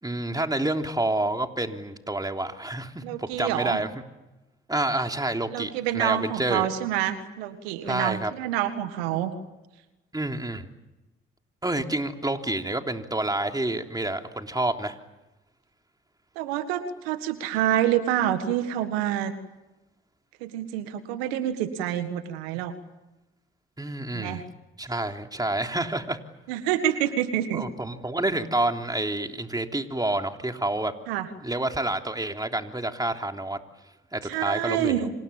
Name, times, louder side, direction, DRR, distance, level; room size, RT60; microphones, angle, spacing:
voice 1, 0.0-3.9 4.7-6.7 7.9-8.3 10.1-10.7 11.6-15.0 23.8-24.4 24.8-26.2 27.5-30.9 31.4-33.6 34.1-35.1, right 1 dB, 15° right, 4 dB, 3.5 m, -28 dB
voice 2, 3.0-3.8 5.5-9.3 16.4-19.3 20.4-22.7 24.1-24.4 26.5-27.7 31.1-31.3 34.2-35.1, right 11 dB, 90° right, 10 dB, 1.8 m, -27 dB
29.5 x 27.0 x 7.3 m, 1.0 s
hypercardioid pair, 45°, 29 cm